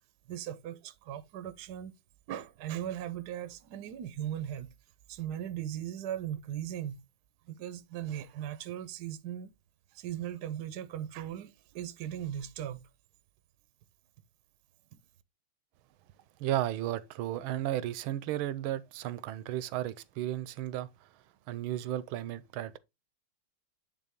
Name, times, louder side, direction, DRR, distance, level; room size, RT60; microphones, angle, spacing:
voice 1, 0.3-1.9 2.3-4.7 5.1-7.0 7.5-9.5 9.9-12.8 14.9-15.0, right 11 dB, 65° right, 1.0 m, -38 dB
voice 2, 16.4-20.9 21.5-22.8, right 13 dB, 85° right, 1.5 m, -34 dB
9.4 x 3.8 x 3.5 m
omnidirectional pair, 2.2 m